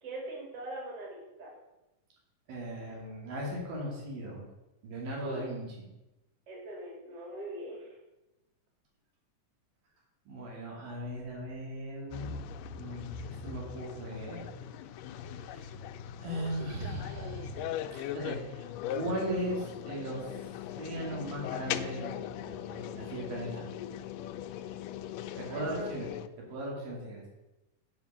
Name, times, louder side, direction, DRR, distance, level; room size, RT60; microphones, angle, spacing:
voice 1, 0.0-1.5 5.2-5.4 6.5-7.9 25.5-25.9, right 1 dB, 45° right, -2 dB, 3.4 m, -41 dB
voice 2, 2.5-4.4 4.8-5.9 10.3-12.4 12.8-14.5 15.4-15.7 16.2-18.7 18.9-20.2 20.8-23.6 25.4-26.1 26.4-27.2, right 1 dB, 85° right, -3 dB, 4.5 m, -38 dB
sound 1, 12.1-26.3, left 10 dB, 80° left, 2.0 m, -40 dB
9.3 x 5.3 x 7.4 m, 0.99 s
omnidirectional pair, 4.0 m